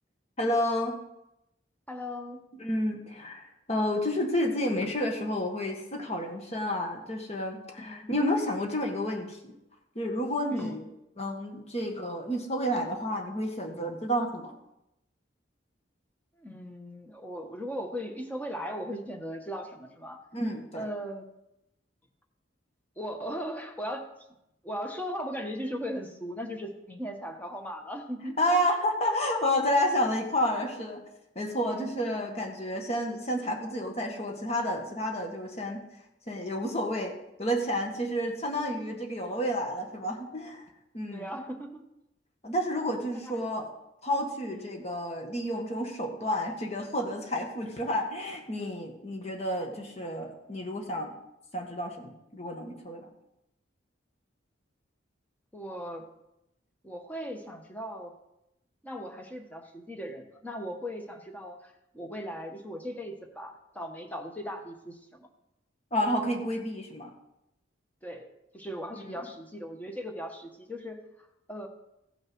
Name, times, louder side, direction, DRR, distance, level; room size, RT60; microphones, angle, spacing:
voice 1, 0.4-1.0 2.6-9.5 9.9-10.8 11.2-14.6 20.3-20.9 28.2-31.0 31.3-35.8 36.3-37.1 37.4-40.7 40.9-41.4 42.4-43.7 44.0-51.2 51.5-53.1 65.9-67.1 68.9-69.1, equal, 35° left, 2 dB, 1.6 m, -30 dB
voice 2, 1.9-2.4 7.8-8.1 10.5-10.8 16.4-20.2 20.7-21.3 23.0-24.1 24.6-28.4 31.6-31.9 41.1-41.8 43.0-43.5 44.5-44.7 55.5-56.1 56.8-58.1 58.8-65.3 68.0-68.3 68.5-71.7, equal, 10° left, 3 dB, 1.4 m, -38 dB
15.0 x 6.5 x 6.2 m, 0.87 s
head